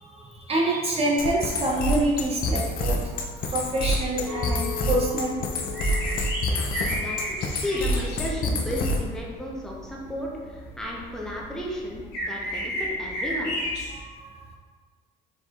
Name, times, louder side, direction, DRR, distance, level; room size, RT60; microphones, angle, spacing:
voice 1, 0.0-3.0 3.3-5.5 13.9-14.2, right 1 dB, 35° right, -2 dB, 0.7 m, -26 dB
sound 1, 1.2-9.2, left 1 dB, 60° left, 0.6 m, -27 dB
sound 2, 1.8-14.0, equal, 75° left, 1.2 m, -35 dB
Chink clink, 4.3-8.6 9.1-9.4, left 7 dB, 15° right, 1.3 m, -41 dB
voice 2, 6.5-13.6, left 1 dB, 5° left, -3 dB, 0.9 m, -34 dB
4.3 x 4.2 x 2.4 m, 1.5 s
cardioid pair, 110°, 17 cm